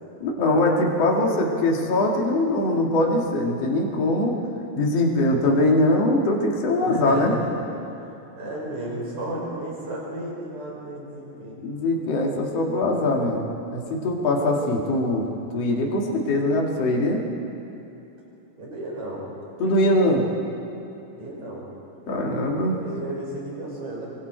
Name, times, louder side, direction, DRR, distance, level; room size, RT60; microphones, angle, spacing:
voice 1, 0.2-4.4 4.7-7.3 11.6-15.3 15.5-17.2 19.6-20.2 22.1-22.9, left 1 dB, 45° left, -1 dB, 3.0 m, -22 dB
voice 2, 6.8-7.6 8.4-11.6 18.6-19.3 21.2-21.6 22.5-24.1, right 1 dB, 50° right, -4 dB, 6.8 m, -33 dB
27.0 x 24.0 x 4.6 m, 2.9 s
omnidirectional pair, 4.2 m